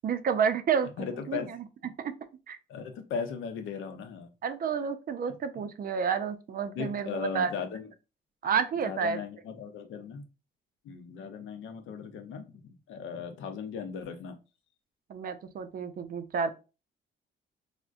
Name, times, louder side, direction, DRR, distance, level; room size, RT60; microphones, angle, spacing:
voice 1, 0.0-2.1 2.5-2.6 4.4-7.5 8.4-9.2 15.1-16.5, right 6 dB, 45° right, 10 dB, 0.4 m, -30 dB
voice 2, 1.0-1.5 2.7-4.3 6.7-7.9 8.8-10.2 10.8-14.4, left 6 dB, 80° left, 6 dB, 0.6 m, -37 dB
3.5 x 2.1 x 2.5 m, 0.31 s
cardioid pair, 90°, 20 cm